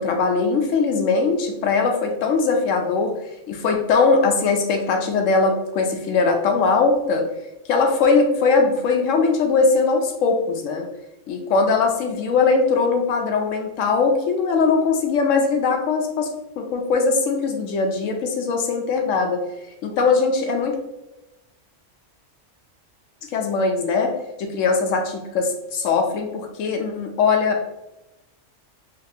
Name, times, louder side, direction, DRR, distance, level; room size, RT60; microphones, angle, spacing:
voice 1, 0.0-3.1 3.5-7.3 7.7-10.9 11.3-16.3 16.6-19.4 19.8-20.8 23.3-27.6, left 4 dB, 80° left, 4 dB, 1.0 m, -20 dB
4.1 x 3.1 x 2.7 m, 0.95 s
omnidirectional pair, 1.3 m